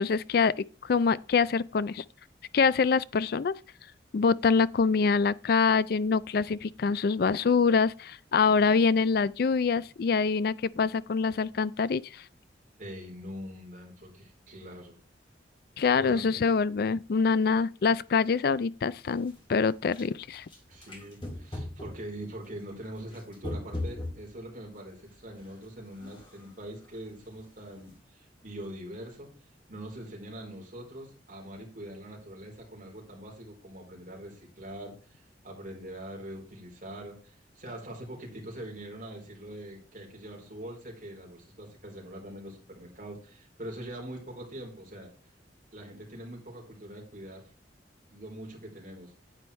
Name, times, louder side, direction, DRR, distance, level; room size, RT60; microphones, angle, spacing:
voice 1, 0.0-2.0 2.5-3.5 4.1-12.2 15.8-20.5, left 5 dB, 55° left, 0.4 m, -25 dB
voice 2, 12.8-15.0 16.0-16.4 20.7-29.4 29.7-45.1 45.7-47.5 48.1-49.1, right 1 dB, 45° right, 3.9 m, -43 dB
sound 1, 19.2-20.1 20.3-22.1 22.4-24.4 24.8-24.9 25.4-25.6 25.9-26.5 26.8-27.0 27.3-27.5 27.8-27.9, left 1 dB, 25° left, 2.7 m, -39 dB
9.8 x 9.2 x 3.2 m
head